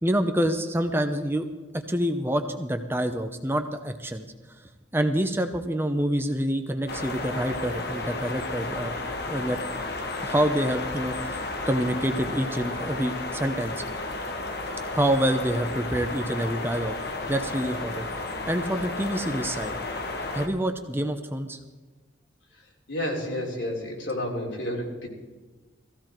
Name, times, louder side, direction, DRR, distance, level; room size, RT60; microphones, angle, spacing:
voice 1, 0.0-1.5 1.7-4.2 4.9-9.6 10.2-11.4 11.7-13.8 14.9-16.9 17.3-18.1 18.5-19.8 20.3-21.6, right 1 dB, 10° right, 7 dB, 0.7 m, -27 dB
sound 1, 6.9-20.5, left 2 dB, 55° left, 1.5 m, -33 dB
voice 2, 22.9-25.1, left 1 dB, 75° left, 0 dB, 3.4 m, -30 dB
17.5 x 15.5 x 4.5 m, 1.2 s
head